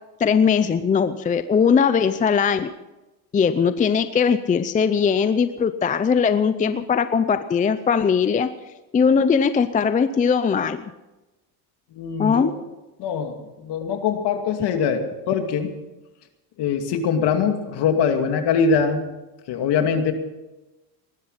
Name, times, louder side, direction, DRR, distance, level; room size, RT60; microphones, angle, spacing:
voice 1, 0.2-2.7 3.3-8.5 8.9-10.9 12.2-12.5, left 6 dB, 15° left, 12 dB, 0.5 m, -20 dB
voice 2, 12.0-12.4 13.0-15.7 16.6-19.0 19.5-20.1, left 6 dB, 55° left, 6 dB, 2.5 m, -22 dB
20.0 x 12.0 x 5.7 m, 1.1 s
supercardioid pair, 120°, 48 cm